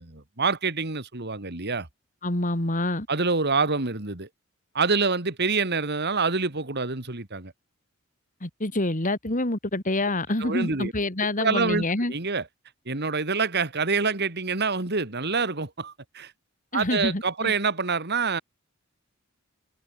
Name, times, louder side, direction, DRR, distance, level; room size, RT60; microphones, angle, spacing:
voice 1, 0.0-1.9 3.1-4.3 4.7-7.5 10.4-10.9 11.4-12.5 12.9-16.3 16.7-18.4, right 4 dB, 55° right, 2.6 m, -26 dB
voice 2, 2.2-3.1 8.4-12.1 16.7-17.5, left 2 dB, 40° left, 3.3 m, -27 dB
head